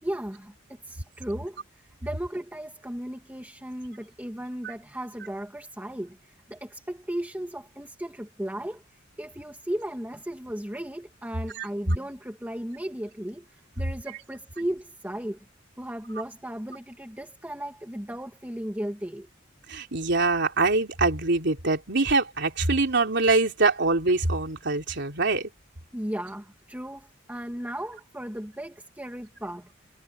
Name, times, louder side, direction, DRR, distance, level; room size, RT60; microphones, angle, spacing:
voice 1, 0.0-8.8 9.2-15.4 15.8-19.3 25.9-29.7, right 1 dB, 10° right, 2.2 m, -36 dB
voice 2, 19.7-25.5, right 3 dB, 60° right, 3.6 m, -24 dB
head